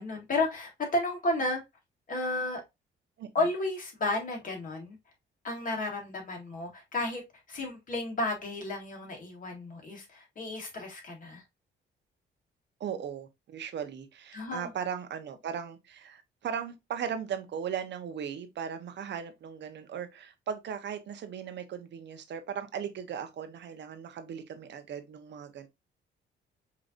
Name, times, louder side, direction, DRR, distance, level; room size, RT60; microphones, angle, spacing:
voice 1, 0.0-1.6 2.1-2.6 3.3-5.0 5.4-7.2 7.5-11.4 14.3-14.7, left 2 dB, 45° left, 1.9 m, -32 dB
voice 2, 12.8-25.7, right 8 dB, 60° right, 0.9 m, -38 dB
5.2 x 2.9 x 2.5 m
cardioid pair, 90°, 20 cm